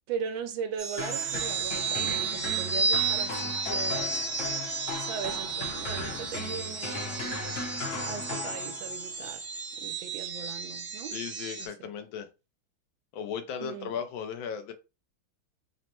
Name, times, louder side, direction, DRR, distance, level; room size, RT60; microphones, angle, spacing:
voice 1, 0.1-4.3 5.0-7.6 8.0-9.4 9.8-11.1 11.6-11.9 13.6-13.9, right 7 dB, 75° right, 1.4 m, -39 dB
sound 1, 0.8-11.7, right 5 dB, 45° right, 1.3 m, -33 dB
sound 2, 1.0-9.1, left 3 dB, 50° left, 1.1 m, -37 dB
voice 2, 11.1-12.3 13.1-14.7, left 7 dB, 75° left, 1.4 m, -36 dB
4.1 x 2.1 x 4.3 m
omnidirectional pair, 2.2 m